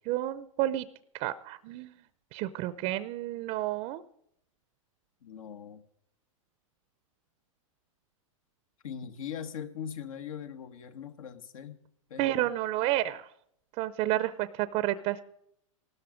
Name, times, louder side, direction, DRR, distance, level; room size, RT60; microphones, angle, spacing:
voice 1, 0.1-0.9 1.2-1.9 2.3-4.0 12.2-13.3 13.8-15.2, right 15 dB, 35° right, 15 dB, 0.6 m, -30 dB
voice 2, 5.2-5.8 8.8-11.8 12.1-12.5, left 8 dB, 75° left, 9 dB, 1.5 m, -41 dB
15.5 x 13.0 x 5.1 m, 0.71 s
hypercardioid pair, 130°, 17 cm